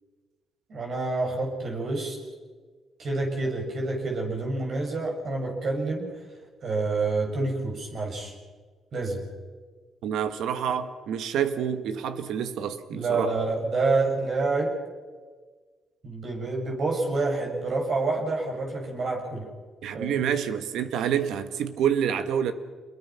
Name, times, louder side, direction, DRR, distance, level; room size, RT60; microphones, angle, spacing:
voice 1, 0.7-2.2 3.0-6.1 6.6-8.3 8.9-9.2 12.9-14.8 16.0-19.4 19.9-20.2, right 3 dB, 55° right, 6.8 m, -28 dB
voice 2, 10.0-13.3 19.8-22.5, right 8 dB, 80° right, 1.6 m, -28 dB
27.5 x 22.0 x 5.9 m
cardioid pair, 90°, 0 cm